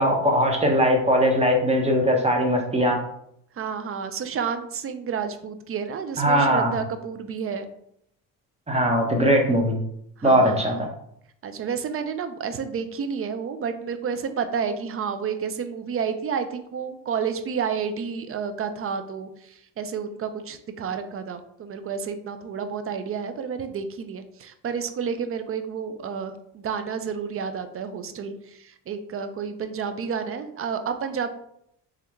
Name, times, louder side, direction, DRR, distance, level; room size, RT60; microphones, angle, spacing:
voice 1, 0.0-3.0 6.2-6.7 8.7-9.8 10.2-10.7, equal, 15° right, 2 dB, 1.0 m, -20 dB
voice 2, 3.6-7.7 10.2-10.8 11.4-31.3, right 6 dB, 35° right, 9 dB, 0.5 m, -30 dB
3.5 x 3.3 x 3.1 m, 0.74 s
supercardioid pair, 75°, 38 cm